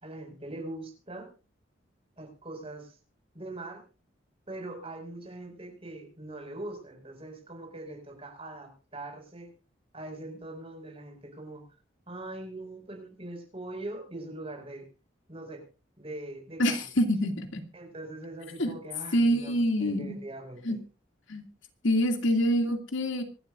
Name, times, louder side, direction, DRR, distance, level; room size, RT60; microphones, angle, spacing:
voice 1, 0.0-1.3 2.2-3.0 3.3-3.8 4.5-9.5 9.9-11.6 12.1-14.9 15.3-15.6 16.0-16.8 17.7-20.8, right 2 dB, 30° right, 3 dB, 5.3 m, -42 dB
voice 2, 16.6-17.6 18.6-18.7 19.1-20.2 20.6-20.8 21.3-21.4 21.8-23.2, equal, 85° left, 5 dB, 2.3 m, -26 dB
25.5 x 12.0 x 2.5 m, 0.33 s
head